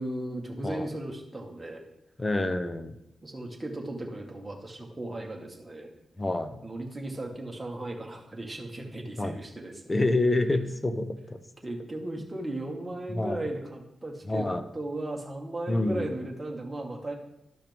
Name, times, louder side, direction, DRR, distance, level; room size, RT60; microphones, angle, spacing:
voice 1, 0.0-1.8 3.2-5.9 6.6-10.1 11.6-14.5 14.7-17.1, right 1 dB, 20° right, 0 dB, 1.8 m, -36 dB
voice 2, 2.2-3.0 6.2-6.6 9.2-9.3 9.9-11.4 13.1-13.4 14.2-14.6 15.7-16.1, left 2 dB, 25° left, 10 dB, 0.8 m, -27 dB
12.0 x 5.6 x 3.6 m, 0.83 s
cardioid pair, 65°, 0 cm